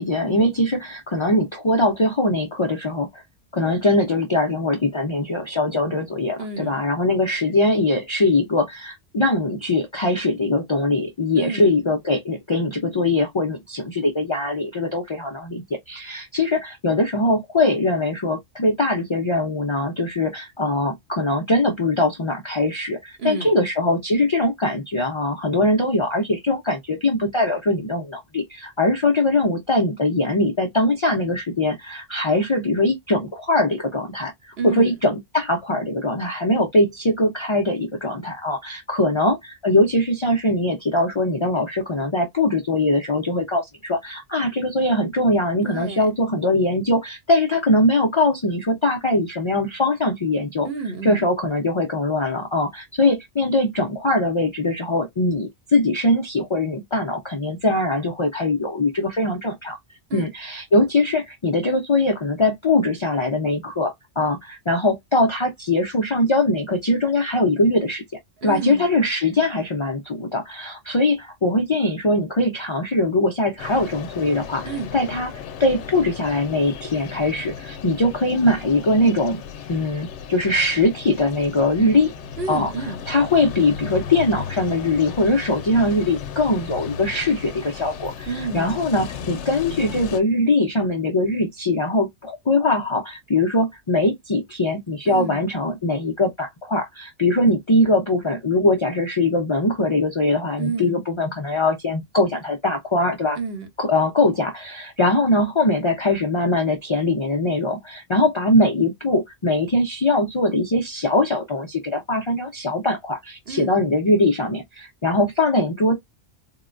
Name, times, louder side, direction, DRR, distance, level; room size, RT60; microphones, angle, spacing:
voice 1, 0.0-3.2 3.5-50.7 51.0-59.8 60.1-68.0 68.4-75.3 75.6-79.4 79.7-82.1 82.5-82.7 83.1-88.3 88.5-103.4 103.8-115.9, left 2 dB, 45° left, 0.4 m, -21 dB
voice 2, 6.4-6.8 11.4-11.7 23.2-23.5 34.6-35.0 45.6-46.1 50.6-51.2 60.1-60.3 68.4-68.9 74.6-74.9 82.4-83.1 88.3-88.8 95.0-95.5 100.6-101.0 103.4-103.7 113.5-113.7, right 5 dB, 60° right, 1.0 m, -30 dB
sound 1, 73.6-90.2, left 7 dB, 80° left, 0.9 m, -35 dB
3.7 x 2.1 x 2.4 m
omnidirectional pair, 1.2 m